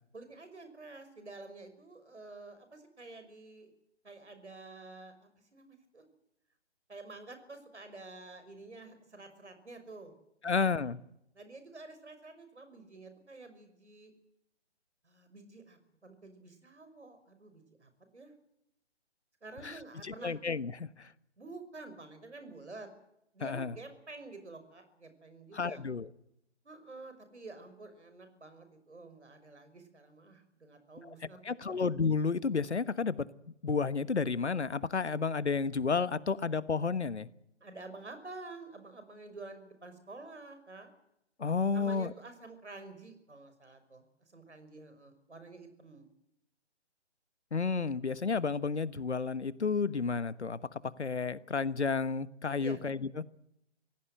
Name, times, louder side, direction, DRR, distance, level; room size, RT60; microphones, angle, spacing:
voice 1, 0.1-3.7 4.0-6.1 6.9-10.1 10.4-10.7 11.3-14.1 15.0-18.3 19.4-20.4 21.4-22.9 23.3-25.8 26.6-31.8 37.6-40.9 41.7-46.1 52.6-52.8, right 3 dB, 75° right, 5.8 m, -49 dB
voice 2, 10.4-11.0 19.6-21.1 23.4-23.7 25.5-26.1 31.4-33.3 33.6-37.3 41.4-42.1 47.5-50.6 51.0-53.2, left 5 dB, 75° left, 1.3 m, -31 dB
25.5 x 17.0 x 7.7 m
figure-of-eight pair, 145°, 34 cm